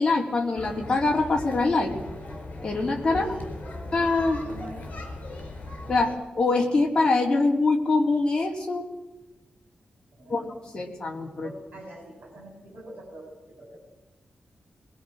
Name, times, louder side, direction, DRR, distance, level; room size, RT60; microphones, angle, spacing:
voice 1, 0.0-1.9 2.6-3.3 3.9-4.4 5.9-8.8 10.3-11.5, left 3 dB, 25° left, -2 dB, 3.5 m, -24 dB
sound 1, 0.6-6.2, left 2 dB, 55° left, 4.5 m, -38 dB
voice 2, 3.1-3.9 4.4-4.8 10.2-10.5 11.4-13.8, right 1 dB, 60° right, -2 dB, 6.9 m, -43 dB
21.5 x 21.0 x 6.5 m, 1.1 s
wide cardioid pair, 175°, 3 cm